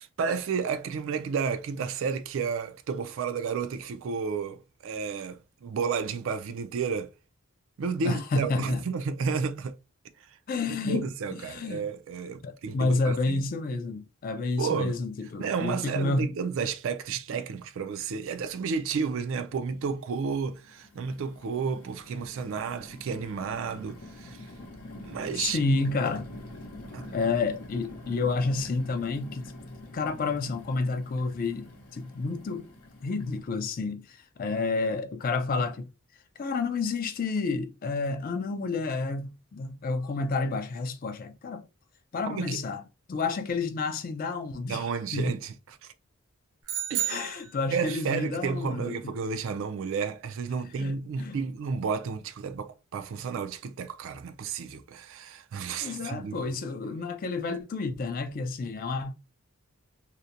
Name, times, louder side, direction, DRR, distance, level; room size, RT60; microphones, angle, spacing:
voice 1, 0.0-7.1 7.8-9.7 10.7-13.4 14.6-15.0 15.4-24.5 25.0-25.6 26.9-27.1 42.2-42.6 44.7-45.5 45.8-45.9 46.9-47.2 47.7-56.5, right 5 dB, 60° right, 0.3 m, -32 dB
voice 2, 8.0-8.8 10.5-11.8 12.4-16.3 25.3-26.3 27.1-29.5 29.9-32.7 33.0-35.9 36.4-41.6 42.1-42.8 43.1-44.9 45.1-45.3 47.1-49.1 50.8-51.4 55.8-59.1, left 3 dB, 40° left, 0.3 m, -30 dB
sound 1, 18.4-18.5 18.9-19.6 20.2-33.4, left 1 dB, 80° left, 0.6 m, -46 dB
sound 2, 46.7-48.1, right 11 dB, 75° right, 0.8 m, -32 dB
2.7 x 2.1 x 2.4 m
head